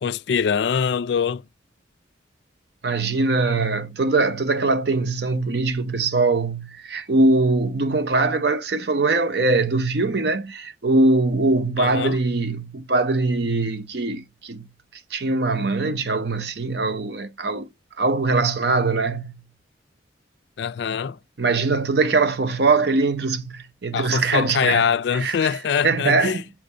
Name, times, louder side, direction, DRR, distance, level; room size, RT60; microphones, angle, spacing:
voice 1, 0.0-1.4 11.8-12.2 20.6-21.2 23.9-26.4, left 7 dB, 65° left, 0.3 m, -23 dB
voice 2, 2.8-14.6 15.1-17.7 18.0-19.3 21.4-25.6 25.8-26.4, right 3 dB, 55° right, 0.7 m, -22 dB
7.2 x 2.5 x 5.4 m
head